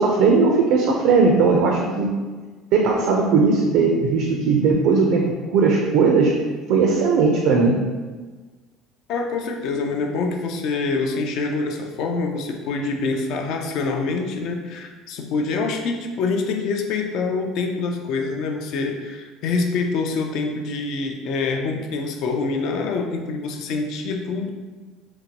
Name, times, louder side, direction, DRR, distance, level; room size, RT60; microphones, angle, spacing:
voice 1, 0.0-2.2 2.7-6.3 6.7-7.8, right 4 dB, 70° right, 0 dB, 0.4 m, -18 dB
voice 2, 9.1-24.5, left 4 dB, 65° left, 3 dB, 0.4 m, -25 dB
3.9 x 2.2 x 2.8 m, 1.4 s
cardioid pair, 140°, 0 cm